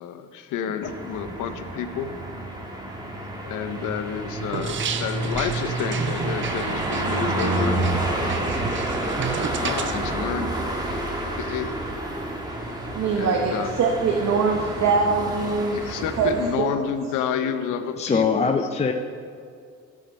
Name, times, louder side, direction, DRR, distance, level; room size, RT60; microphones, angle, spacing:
voice 1, 0.0-2.1 3.4-7.8 9.6-10.5 11.4-11.7 13.2-13.7 15.7-18.6, left 7 dB, 90° left, 9 dB, 0.7 m, -29 dB
sound 1, 0.8-16.5, right 1 dB, 15° right, 1.5 m, -29 dB
sound 2, 4.5-10.0, right 7 dB, 40° right, 0.6 m, -32 dB
voice 2, 12.9-15.8 16.2-16.7, right 4 dB, 60° right, 1 dB, 0.9 m, -23 dB
voice 3, 18.0-18.9, left 5 dB, 20° left, 5 dB, 0.4 m, -22 dB
12.5 x 4.7 x 5.1 m, 2.3 s
cardioid pair, 90°, 30 cm